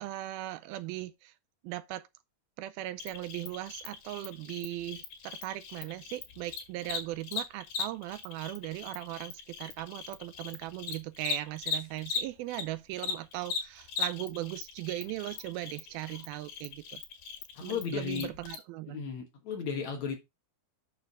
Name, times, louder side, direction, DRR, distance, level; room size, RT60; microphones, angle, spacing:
voice 1, 0.0-1.3 1.6-2.1 2.6-17.0 17.6-19.0, right 16 dB, 85° right, 2.4 m, -38 dB
Cricket, 3.0-12.6 12.9-18.6, left 6 dB, 80° left, 3.7 m, -38 dB
voice 2, 17.6-18.3 18.9-20.2, left 6 dB, 55° left, 2.4 m, -35 dB
8.3 x 6.3 x 3.6 m
omnidirectional pair, 4.4 m